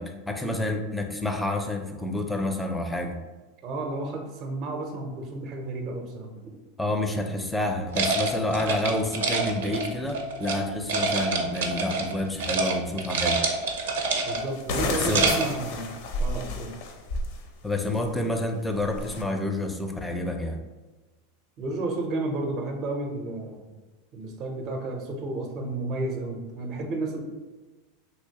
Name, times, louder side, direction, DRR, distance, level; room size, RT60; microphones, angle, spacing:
voice 1, 0.0-3.2 6.8-13.4 14.9-15.3 17.6-20.6, left 1 dB, 5° left, 4 dB, 0.4 m, -29 dB
voice 2, 3.6-6.6 14.2-15.9 16.2-16.7 21.6-23.7 24.1-27.2, right 2 dB, 40° right, 2 dB, 0.5 m, -32 dB
sound 1, 7.9-10.6 10.9-12.1 12.4-12.7 13.0-14.5 14.9-15.6, right 3 dB, 85° right, 0.5 m, -26 dB
sound 2, 11.7-11.8 13.7-13.8 14.5-17.4 17.8-18.1 18.7-19.2, left 2 dB, 65° left, 0.5 m, -31 dB
3.1 x 3.0 x 2.8 m, 1.2 s
supercardioid pair, 120°, 0 cm